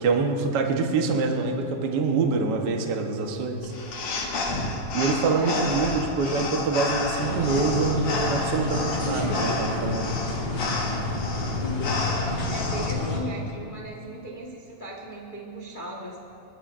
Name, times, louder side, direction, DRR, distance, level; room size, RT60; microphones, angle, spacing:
voice 1, 0.0-3.7 4.9-10.1, right 4 dB, 80° right, 2 dB, 0.9 m, -25 dB
sound 1, 3.6-12.9, left 2 dB, 85° left, 3.5 m, -30 dB
voice 2, 5.3-5.9 11.3-16.2, right 1 dB, 70° left, -2 dB, 0.4 m, -38 dB
sound 2, 7.2-13.2, left 2 dB, 50° left, 3.0 m, -30 dB
25.5 x 13.0 x 2.5 m, 2.7 s
omnidirectional pair, 3.6 m